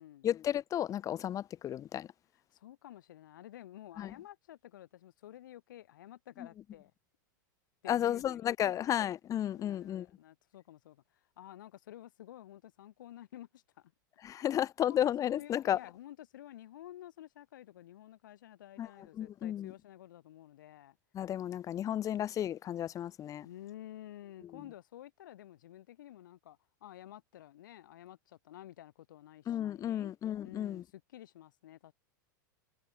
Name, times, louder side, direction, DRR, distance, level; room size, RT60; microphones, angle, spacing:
voice 1, 0.2-2.1 4.0-4.1 7.9-10.1 14.2-15.8 18.8-18.9 19.2-19.7 21.1-23.5 29.5-30.8, left 11 dB, 30° left, 1.2 m, -33 dB
voice 2, 2.3-6.9 7.8-8.8 9.5-13.9 14.2-21.0 23.4-30.1 30.4-31.9, left 13 dB, 75° left, 4.0 m, -52 dB
hypercardioid pair, 105°, 11 cm